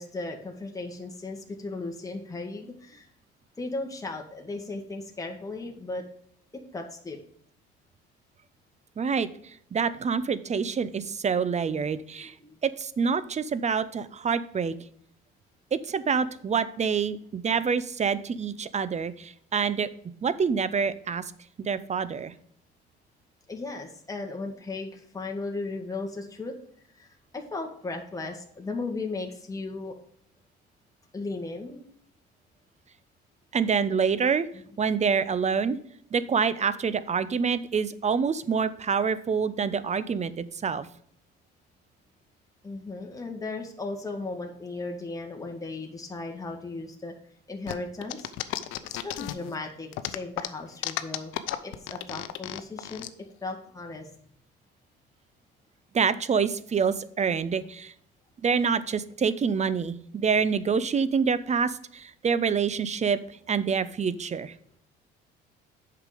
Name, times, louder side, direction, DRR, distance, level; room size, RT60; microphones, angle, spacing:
voice 1, 0.0-3.0 3.6-6.0 6.7-7.2 12.4-12.5 23.5-26.5 27.0-27.1 27.3-29.9 31.1-31.8 42.6-47.1 47.5-48.3 48.9-51.3 51.6-53.1 53.4-54.1, left 3 dB, 15° left, 2 dB, 1.8 m, -36 dB
voice 2, 9.0-12.3 12.6-14.8 15.7-19.9 20.2-21.2 21.6-22.3 33.5-34.5 34.8-35.8 36.1-40.9 55.9-57.9 58.4-63.2 63.5-64.5, right 6 dB, 35° right, 15 dB, 0.7 m, -26 dB
sound 1, 47.7-49.5 49.9-53.1, left 14 dB, 75° left, 0.7 m, -33 dB
8.0 x 5.9 x 5.0 m, 0.65 s
supercardioid pair, 75°, 21 cm